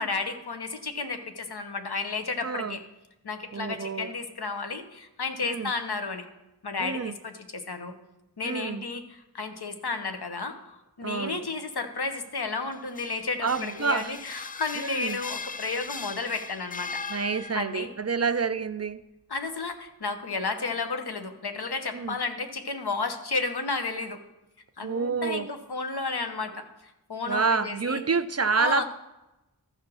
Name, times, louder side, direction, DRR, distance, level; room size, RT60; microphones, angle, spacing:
voice 1, 0.0-2.8 3.2-6.2 6.6-7.9 8.4-17.0 17.5-17.9 19.3-24.2 24.8-26.7 27.1-28.0 28.5-28.8, left 4 dB, 70° left, 7 dB, 1.1 m, -32 dB
voice 2, 2.4-2.8 3.5-4.1 5.4-5.7 6.8-7.2 8.4-8.8 11.0-11.5 13.4-14.1 14.8-15.2 17.1-19.0 21.9-22.2 24.8-25.5 27.3-28.8, right 5 dB, 40° right, 12 dB, 0.4 m, -28 dB
sound 1, 12.7-17.9, left 4 dB, 20° left, 0.4 m, -39 dB
13.5 x 4.9 x 6.2 m, 0.98 s
wide cardioid pair, 60°, 40 cm